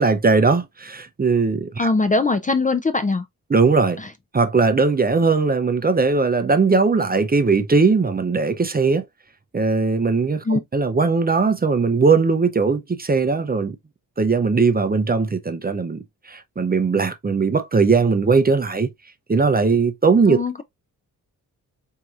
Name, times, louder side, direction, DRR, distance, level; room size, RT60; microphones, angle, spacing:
voice 1, 0.0-1.9 3.5-4.0 4.3-9.0 9.5-13.8 14.2-16.0 16.3-18.9 19.3-20.4, right 4 dB, 25° right, 0.6 m, -19 dB
voice 2, 1.8-3.2 4.0-4.1 10.4-10.6 20.3-20.6, left 3 dB, 25° left, 0.4 m, -21 dB
4.4 x 2.8 x 2.4 m
wide cardioid pair, 95°, 34 cm